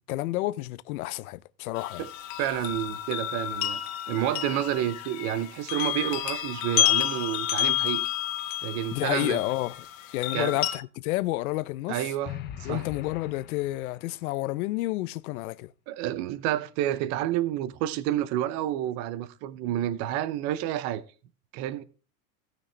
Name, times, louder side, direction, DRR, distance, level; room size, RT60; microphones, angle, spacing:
voice 1, 0.1-2.1 8.9-9.8 10.1-12.0 12.6-15.7, left 18 dB, 85° left, 0.7 m, -30 dB
sound 1, 1.8-10.8, left 13 dB, 40° left, 1.2 m, -30 dB
voice 2, 2.4-3.8 4.1-8.0 8.6-9.4 10.3-10.6 11.9-12.8 15.9-21.0 21.5-21.8, right 12 dB, 40° right, 0.7 m, -29 dB
sound 2, 12.2-14.3, left 12 dB, 25° left, 0.7 m, -41 dB
16.5 x 6.2 x 3.3 m
supercardioid pair, 160°, 42 cm